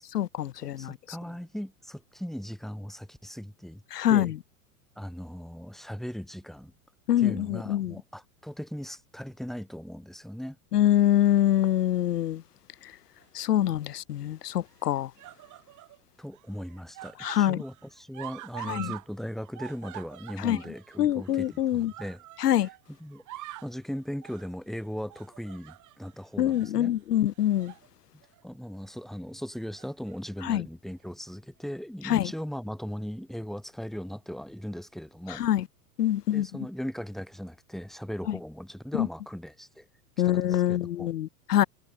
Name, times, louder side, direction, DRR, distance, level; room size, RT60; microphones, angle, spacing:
voice 1, 0.0-0.9 3.9-4.3 7.1-7.9 10.7-12.4 13.4-15.1 17.2-17.6 18.7-18.9 20.4-20.6 21.0-21.9 22.4-22.7 26.4-27.7 30.5-30.6 32.1-32.3 35.4-35.6 36.0-36.5 39.0-39.1 40.2-41.6, left 12 dB, 85° left, 1.0 m, -25 dB
voice 2, 0.6-3.8 4.1-4.3 5.0-6.7 7.2-10.6 16.2-22.2 22.6-23.2 23.6-26.9 28.4-35.4 36.3-39.9 40.3-41.1, equal, ahead, 6.6 m, -38 dB
sound 1, 13.2-13.8 14.7-16.0 16.3-19.1 19.3-22.8 23.1-23.8 24.2-24.5 25.1-26.1 26.5-26.7 27.4-27.9 28.2-28.4 29.5-30.2 31.1-31.2, right 16 dB, 40° right, 7.2 m, -45 dB
hypercardioid pair, 105°, 46 cm